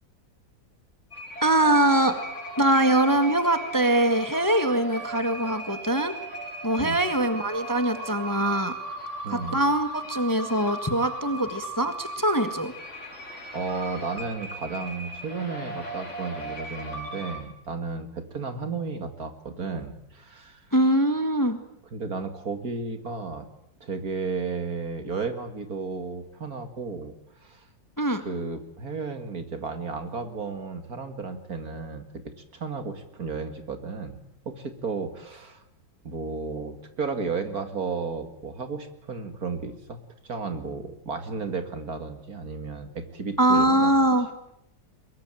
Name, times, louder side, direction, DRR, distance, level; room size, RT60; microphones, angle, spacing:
sound 1, 1.1-17.4, right 2 dB, 40° left, 4.8 m, -37 dB
voice 1, 1.4-2.2 2.6-6.1 6.6-8.7 9.3-12.7 20.7-21.6 28.0-28.2 43.4-44.3, right 1 dB, 10° left, 9 dB, 1.6 m, -23 dB
voice 2, 9.2-9.6 13.5-20.6 21.9-23.5 23.8-27.1 27.4-27.7 28.2-32.0 32.5-34.2 34.5-35.6 36.0-43.9, right 4 dB, 50° right, 8 dB, 2.6 m, -33 dB
23.5 x 21.5 x 9.1 m, 0.76 s
omnidirectional pair, 2.0 m